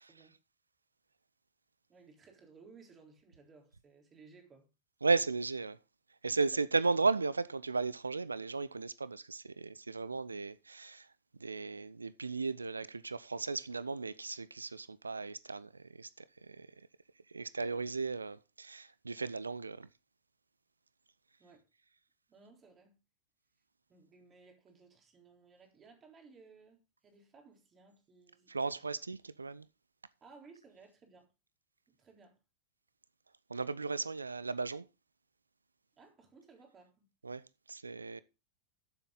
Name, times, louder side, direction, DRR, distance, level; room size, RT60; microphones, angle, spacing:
voice 1, 1.9-4.7 6.5-6.7 21.4-21.7 22.3-23.0 23.9-28.9 30.2-31.3 31.9-32.4 36.0-37.1, right 4 dB, 25° right, 3.6 m, -59 dB
voice 2, 5.0-5.8 6.2-11.1 11.4-16.7 17.3-19.9 28.5-29.7 33.5-34.9 37.2-38.2, right 4 dB, 80° right, 0.5 m, -35 dB
13.0 x 7.5 x 3.9 m
figure-of-eight pair, 90°, 0 cm